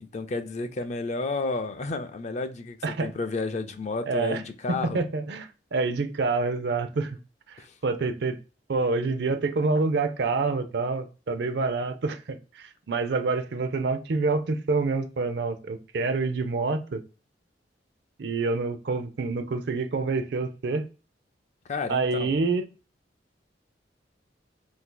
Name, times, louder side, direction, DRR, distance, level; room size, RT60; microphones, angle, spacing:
voice 1, 0.0-5.0 7.6-7.7 21.7-22.4, left 3 dB, 40° left, 0.4 m, -31 dB
voice 2, 4.1-4.4 4.7-7.2 7.5-8.4 8.7-17.0 18.2-20.9 21.9-22.6, right 3 dB, 65° right, 0.5 m, -27 dB
2.7 x 2.5 x 3.7 m
head